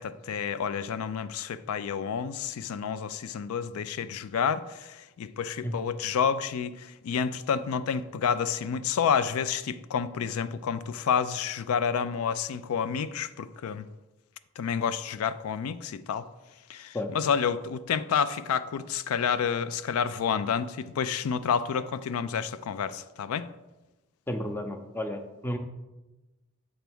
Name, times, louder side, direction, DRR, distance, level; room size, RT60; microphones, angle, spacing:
voice 1, 0.0-13.8 14.6-16.3 16.7-23.5, left 7 dB, 85° left, 0.3 m, -29 dB
voice 2, 24.3-25.6, left 1 dB, 10° left, 0.6 m, -33 dB
7.8 x 3.4 x 6.0 m
head